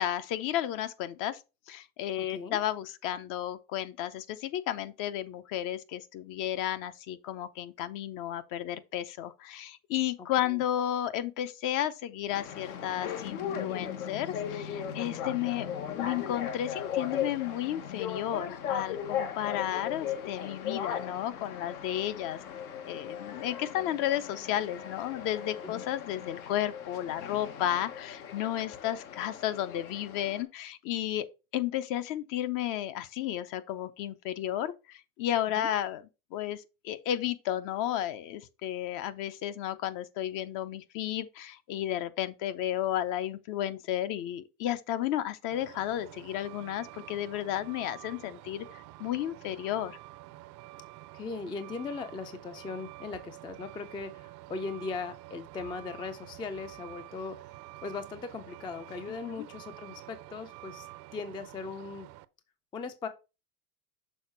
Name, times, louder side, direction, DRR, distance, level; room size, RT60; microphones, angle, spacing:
voice 1, 0.0-1.4 1.7-15.7 15.9-22.4 22.8-31.3 31.5-36.0 36.3-50.0 59.4-59.5, left 12 dB, 45° left, 0.7 m, -33 dB
voice 2, 2.2-2.6 10.4-10.6 25.6-25.8 35.6-35.7 51.1-57.4 57.8-62.1 62.7-63.1, left 4 dB, 10° left, 0.4 m, -39 dB
sound 1, 12.3-30.4, left 8 dB, 80° left, 1.4 m, -37 dB
Truck, 45.5-62.2, right 17 dB, 45° right, 0.5 m, -48 dB
6.4 x 3.8 x 4.4 m
supercardioid pair, 115°, 43 cm